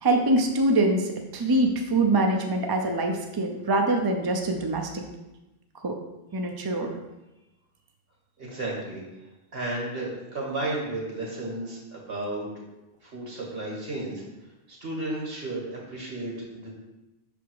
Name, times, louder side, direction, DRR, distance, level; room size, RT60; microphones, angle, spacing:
voice 1, 0.0-5.0 5.8-6.0 6.3-6.9, right 2 dB, 30° right, 3 dB, 0.4 m, -24 dB
voice 2, 8.4-9.0 9.5-12.6 13.0-14.2 14.7-16.7, right 2 dB, 70° right, -3 dB, 2.0 m, -33 dB
6.0 x 3.5 x 4.7 m, 1.0 s
omnidirectional pair, 1.1 m